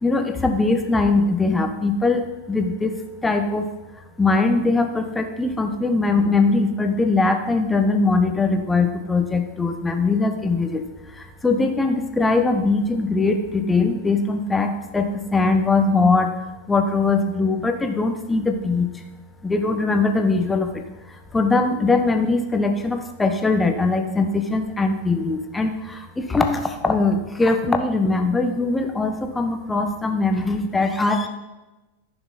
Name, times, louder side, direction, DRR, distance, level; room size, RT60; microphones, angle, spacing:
voice 1, 0.0-2.9 3.2-3.7 4.2-10.8 11.1-16.3 16.7-18.9 19.4-31.3, left 3 dB, 10° left, 5 dB, 1.0 m, -21 dB
14.0 x 6.1 x 4.1 m, 1.1 s
figure-of-eight pair, 90°, 0 cm